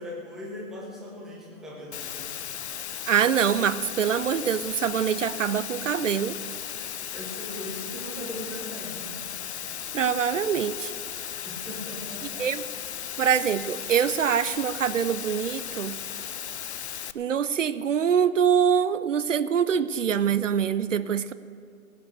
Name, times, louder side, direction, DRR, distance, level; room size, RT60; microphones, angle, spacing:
voice 1, 0.0-2.2 7.1-9.3 11.4-12.5, left 1 dB, ahead, -4 dB, 0.7 m, -39 dB
Water, 1.9-17.1, left 9 dB, 55° left, 0.5 m, -36 dB
voice 2, 3.1-6.4 9.9-10.9 12.4-12.6 13.2-15.9 17.1-21.3, right 8 dB, 65° right, 16 dB, 0.7 m, -24 dB
17.0 x 8.1 x 8.0 m, 2.2 s
hypercardioid pair, 150°, 41 cm